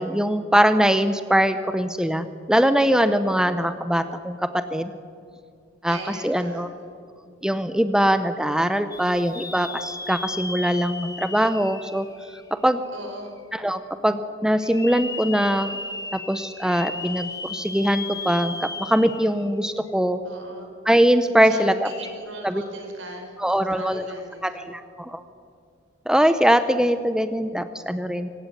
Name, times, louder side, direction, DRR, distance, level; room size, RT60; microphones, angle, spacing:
voice 1, 0.0-4.9 5.8-6.0 6.2-6.7 7.4-12.1 12.5-12.8 13.5-15.7 16.1-20.2 20.9-21.9 22.4-22.6 23.4-24.1 24.4-25.2 26.1-28.3, equal, 5° right, 10 dB, 0.7 m, -22 dB
voice 2, 5.9-6.6 12.9-13.3 20.2-20.7 21.4-23.3 23.7-24.7, right 2 dB, 75° right, 3 dB, 5.6 m, -38 dB
sound 1, 8.9-12.9 13.4-13.5 14.6-19.5 19.9-20.0 21.9-22.1, left 3 dB, 20° left, 1.3 m, -35 dB
25.0 x 16.5 x 9.2 m, 2.3 s
head